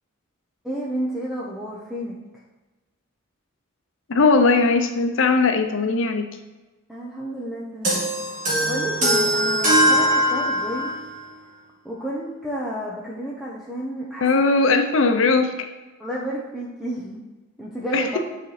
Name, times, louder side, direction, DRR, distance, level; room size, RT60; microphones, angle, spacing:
voice 1, 0.6-2.2 6.9-8.1 8.6-10.9 11.8-14.4 16.0-17.2 17.6-18.2, equal, ahead, -5 dB, 0.6 m, -31 dB
voice 2, 4.1-6.3 14.2-15.6 17.9-18.2, left 3 dB, 70° left, 6 dB, 0.7 m, -19 dB
sound 1, 7.8-11.0, equal, 40° right, 1.9 m, -21 dB
9.4 x 4.1 x 3.2 m, 1.2 s
head